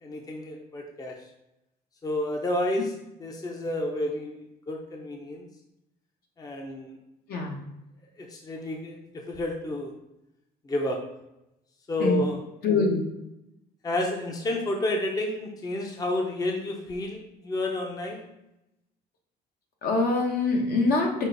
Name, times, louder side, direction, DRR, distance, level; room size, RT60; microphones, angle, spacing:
voice 1, 0.0-1.2 2.0-2.9 3.2-5.4 6.4-7.0 8.2-9.9 10.6-11.0 11.9-12.4 13.8-18.2, left 1 dB, 20° left, 1 dB, 0.7 m, -30 dB
voice 2, 12.6-13.0 19.8-21.3, left 3 dB, 65° left, 1 dB, 1.1 m, -24 dB
5.3 x 2.5 x 3.9 m, 0.89 s
cardioid pair, 110°, 17 cm